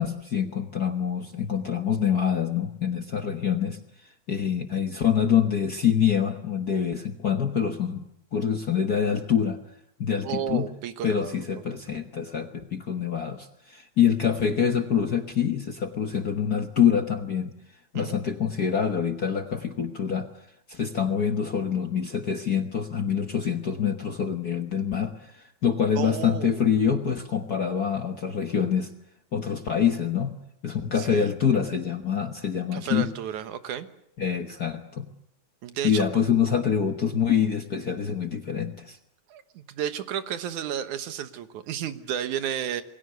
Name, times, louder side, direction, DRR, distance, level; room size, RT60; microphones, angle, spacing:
voice 1, 0.0-3.8 4.3-8.0 8.3-9.6 10.0-10.7 11.0-17.6 17.9-20.3 20.7-28.9 29.3-30.4 30.6-33.1 34.2-35.1 35.8-39.0, left 8 dB, 50° left, 6 dB, 1.2 m, -25 dB
voice 2, 10.2-11.4 11.7-11.8 17.9-18.2 26.0-26.6 31.0-31.3 32.7-33.9 35.6-36.0 39.3-42.8, right 9 dB, 90° right, 11 dB, 2.7 m, -32 dB
28.0 x 21.0 x 6.8 m, 0.75 s
omnidirectional pair, 3.3 m